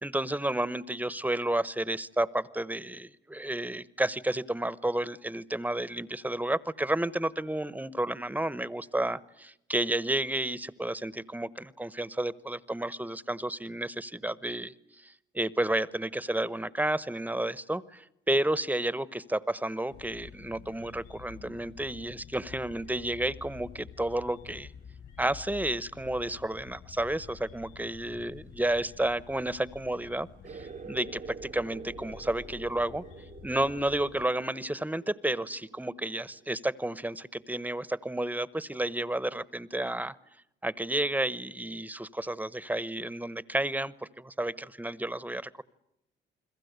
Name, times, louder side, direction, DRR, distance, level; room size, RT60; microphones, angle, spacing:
voice 1, 0.0-24.7 25.2-33.0 33.4-40.1 40.6-45.6, right 1 dB, 10° right, 18 dB, 1.0 m, -31 dB
sound 1, 19.9-34.2, left 7 dB, 70° left, 6.1 m, -49 dB
sound 2, 30.4-36.6, right 6 dB, 40° right, 0.9 m, -47 dB
29.5 x 22.0 x 8.2 m, 0.79 s
cardioid pair, 90°, 20 cm